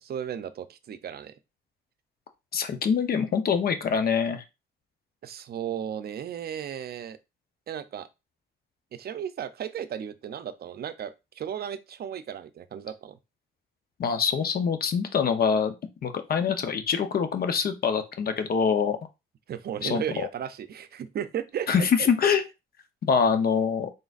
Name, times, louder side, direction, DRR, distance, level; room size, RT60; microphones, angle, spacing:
voice 1, 0.0-1.4 5.2-7.2 7.7-8.1 8.9-13.2 19.5-21.7 22.0-22.1, right 9 dB, 50° right, 0.6 m, -35 dB
voice 2, 2.5-4.4 14.0-15.7 16.0-19.0 19.8-20.0 21.7-22.4 23.0-23.9, left 6 dB, 50° left, 0.7 m, -24 dB
3.9 x 3.8 x 2.4 m
cardioid pair, 90°, 20 cm